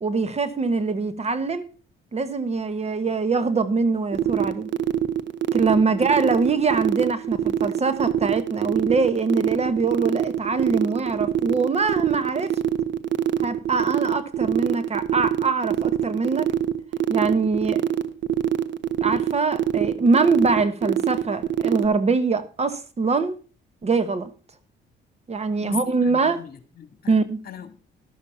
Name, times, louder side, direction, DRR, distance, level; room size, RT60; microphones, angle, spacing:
voice 1, 0.0-1.7 2.1-4.7 5.5-12.6 13.4-16.5 17.1-17.8 19.0-23.4 23.8-24.3 25.3-26.4 27.1-27.4, right 4 dB, 35° right, 1.1 m, -23 dB
sound 1, 4.1-21.8, right 10 dB, 65° right, 1.0 m, -23 dB
voice 2, 5.9-6.2 25.6-27.2 27.4-27.8, left 8 dB, 50° left, 1.9 m, -39 dB
12.5 x 7.2 x 5.6 m
cardioid pair, 90°, 20 cm